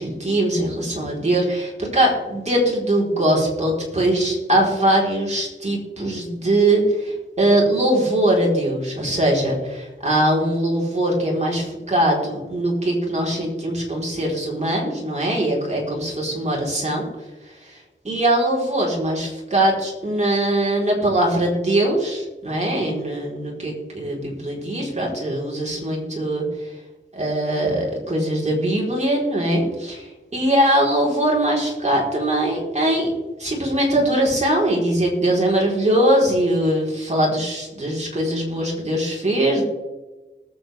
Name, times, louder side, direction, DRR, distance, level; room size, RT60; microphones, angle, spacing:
voice 1, 0.0-17.1 17.7-17.8 18.0-26.5 27.1-30.0 30.3-33.1 33.4-39.6, right 1 dB, 35° right, -3 dB, 4.1 m, -21 dB
20.0 x 8.0 x 3.5 m, 1.2 s
wide cardioid pair, 100°, 20 cm